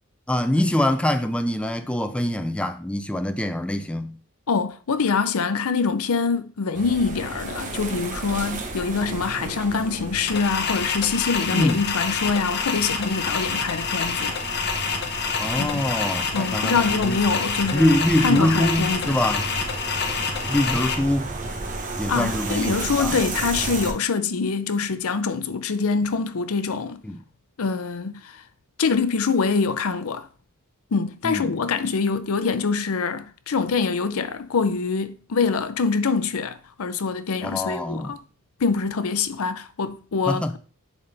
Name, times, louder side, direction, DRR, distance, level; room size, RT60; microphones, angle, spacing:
voice 1, 0.3-4.2 11.5-11.8 15.4-17.2 17.7-19.5 20.5-21.4 22.0-23.2 27.0-27.2 31.2-31.5 37.4-38.1 40.3-40.6, left 1 dB, 5° left, 0.4 m, -24 dB
voice 2, 4.5-14.4 15.6-15.8 16.3-17.9 18.2-19.2 22.1-27.0 27.6-28.4 28.8-30.3 30.9-38.2 38.6-40.6, left 5 dB, 75° left, 0.6 m, -24 dB
sound 1, 6.7-23.9, right 2 dB, 35° right, 1.1 m, -33 dB
sound 2, 10.3-20.9, left 5 dB, 50° left, 0.9 m, -27 dB
10.5 x 4.0 x 3.4 m
head